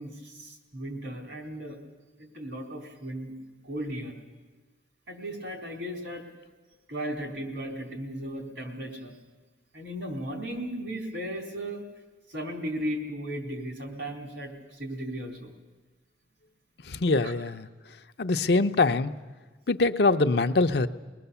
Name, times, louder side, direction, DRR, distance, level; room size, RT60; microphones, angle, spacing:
voice 1, 0.0-1.8 2.2-3.3 3.6-4.2 5.1-6.2 6.9-9.2 9.7-11.8 12.3-15.5 17.2-17.3, equal, 75° right, 2 dB, 3.9 m, -36 dB
voice 2, 16.8-17.7 18.2-19.1 19.7-20.9, left 3 dB, 60° left, 8 dB, 0.6 m, -23 dB
23.0 x 20.0 x 7.0 m, 1.3 s
head